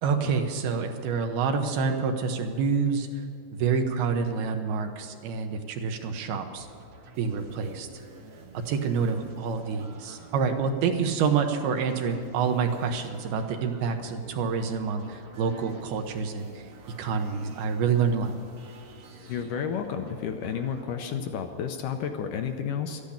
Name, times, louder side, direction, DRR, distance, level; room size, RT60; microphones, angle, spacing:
voice 1, 0.0-3.1 3.5-6.7 7.2-7.9 8.7-16.5 17.0-18.3, right 5 dB, 80° right, 5 dB, 3.0 m, -27 dB
sound 1, 6.6-21.3, right 3 dB, 60° right, 1.4 m, -49 dB
voice 2, 19.3-23.0, left 7 dB, 75° left, 6 dB, 2.0 m, -31 dB
13.0 x 10.5 x 8.6 m, 2.5 s
omnidirectional pair, 4.6 m